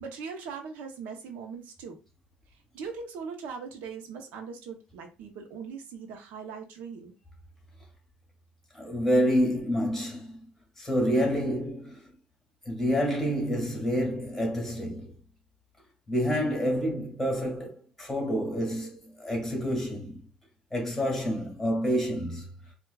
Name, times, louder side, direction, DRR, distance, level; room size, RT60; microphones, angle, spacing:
voice 1, 0.0-2.0 2.5-7.1, right 5 dB, 80° right, 0.7 m, -40 dB
voice 2, 8.7-10.4 10.8-12.1 12.7-15.1 16.1-20.2 20.7-22.5, equal, 5° left, 1.7 m, -28 dB
4.6 x 2.3 x 2.3 m
cardioid pair, 120°, 3 cm